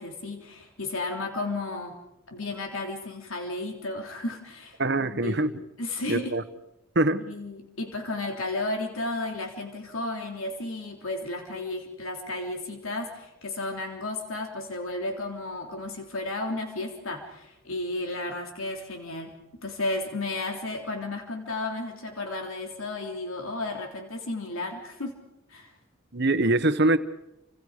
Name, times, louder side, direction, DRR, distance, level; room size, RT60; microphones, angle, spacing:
voice 1, 0.0-2.0 2.3-5.5 5.8-6.3 7.2-19.3 19.6-25.1 25.5-25.7, left 2 dB, 90° left, 2 dB, 3.4 m, -33 dB
voice 2, 4.8-5.5 6.1-6.4 6.9-7.2 26.1-27.0, right 2 dB, 55° right, 11 dB, 1.3 m, -23 dB
29.5 x 26.5 x 5.1 m, 0.89 s
head